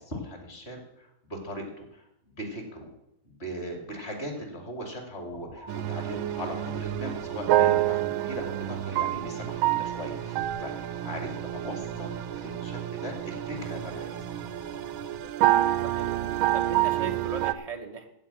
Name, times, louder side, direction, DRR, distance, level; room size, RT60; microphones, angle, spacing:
voice 1, 0.0-2.9 3.2-14.3, equal, 30° left, 2 dB, 2.8 m, -39 dB
sound 1, 5.3-15.3, left 2 dB, 75° left, 4.0 m, -46 dB
sound 2, 5.7-17.5, right 14 dB, 85° right, 1.4 m, -28 dB
voice 2, 15.8-16.1 16.5-18.1, right 4 dB, 70° right, 3 dB, 0.3 m, -38 dB
15.5 x 5.2 x 8.8 m, 0.84 s
omnidirectional pair, 2.2 m